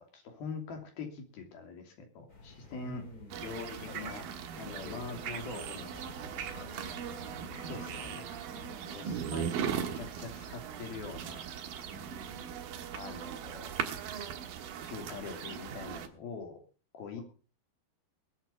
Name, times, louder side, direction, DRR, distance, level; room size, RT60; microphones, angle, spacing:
voice 1, 0.1-3.0 3.4-4.2 4.6-6.0 7.7-8.3 8.9-11.4 11.8-11.9 12.9-13.7 14.8-16.6 16.9-17.2, left 4 dB, 65° left, 4 dB, 4.7 m, -43 dB
sound 1, 2.3-8.2, left 2 dB, 25° left, 3.0 m, -52 dB
voice 2, 2.8-3.4 3.9-4.2 4.6-5.0 5.2-5.8 6.2-6.8 8.5-9.0 11.9-12.6 17.2-17.3, left 4 dB, 85° left, 5 dB, 7.1 m, -51 dB
sound 2, 3.3-16.1, right 8 dB, 65° right, 2.9 m, -39 dB
21.5 x 9.1 x 4.1 m, 0.37 s
omnidirectional pair, 4.7 m